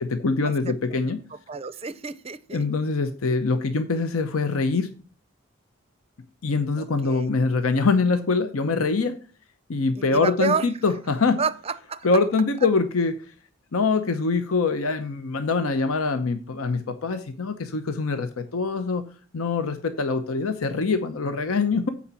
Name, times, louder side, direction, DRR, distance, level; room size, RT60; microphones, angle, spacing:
voice 1, 0.1-1.2 2.5-4.9 6.4-9.1 9.7-11.4 12.0-13.2 13.7-19.0 19.3-21.9, left 4 dB, 90° left, 0.8 m, -24 dB
voice 2, 1.5-2.6 6.8-7.3 10.0-10.7 11.4-12.1, right 5 dB, 30° right, 0.4 m, -29 dB
8.5 x 4.3 x 6.9 m
head